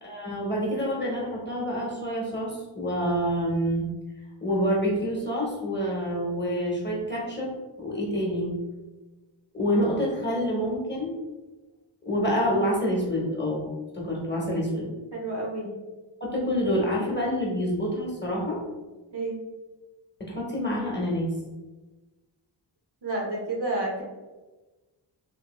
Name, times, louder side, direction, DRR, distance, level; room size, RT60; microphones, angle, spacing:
voice 1, 0.0-3.9 4.4-7.5 7.8-8.5 9.5-11.2 12.0-13.6 13.9-14.9 16.2-18.6 20.3-21.3, equal, 20° left, -4 dB, 0.8 m, -27 dB
voice 2, 15.1-15.7 19.1-19.4 23.0-24.0, right 2 dB, 55° right, -2 dB, 0.9 m, -30 dB
2.9 x 2.6 x 3.0 m, 1.2 s
wide cardioid pair, 90°, 48 cm